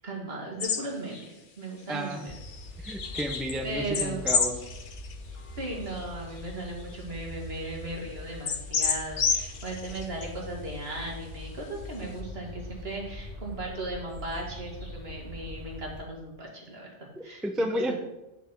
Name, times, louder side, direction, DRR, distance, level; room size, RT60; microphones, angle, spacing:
voice 1, 0.0-2.3 3.6-4.3 5.6-17.4 17.9-18.0, right 2 dB, 60° right, -1 dB, 2.3 m, -37 dB
sound 1, 0.6-0.8 1.1-1.2 2.2-3.6 3.9-5.1 5.6-5.7 6.4-6.5 6.8-6.9 8.5-10.3, left 5 dB, 50° left, 0.9 m, -29 dB
voice 2, 1.9-2.2 2.8-4.5 17.4-18.0, equal, ahead, 5 dB, 0.5 m, -31 dB
sound 2, 2.3-16.0, left 1 dB, 25° left, 2.2 m, -43 dB
8.4 x 6.7 x 4.5 m, 0.95 s
omnidirectional pair, 1.2 m